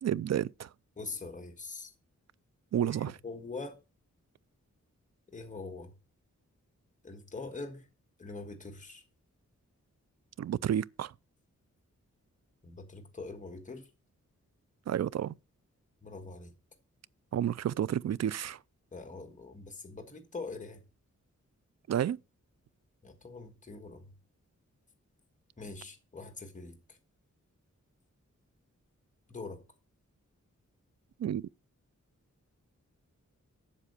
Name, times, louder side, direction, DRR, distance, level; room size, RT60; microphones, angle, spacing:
voice 1, 0.0-0.7 2.7-3.2 10.4-11.1 14.9-15.3 17.3-18.6 21.9-22.2 31.2-31.5, right 10 dB, 60° right, 0.4 m, -31 dB
voice 2, 1.0-1.9 2.8-3.8 5.3-5.9 7.0-7.9 8.2-9.0 12.6-13.9 16.0-16.5 18.9-20.8 23.0-24.1 25.6-27.0 29.3-29.6, left 3 dB, 25° left, 1.5 m, -43 dB
7.7 x 7.4 x 6.6 m
wide cardioid pair, 135°, 30 cm